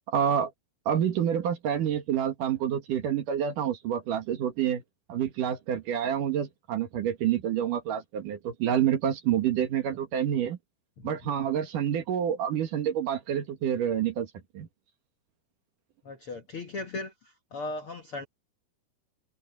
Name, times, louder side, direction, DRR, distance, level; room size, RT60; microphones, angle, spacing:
voice 1, 0.1-0.5 0.9-4.8 5.1-10.6 11.0-14.3 14.5-14.7, right 9 dB, 60° right, 3.0 m, -28 dB
voice 2, 11.0-11.3 16.0-18.2, left 2 dB, 55° left, 1.6 m, -38 dB
omnidirectional pair, 4.5 m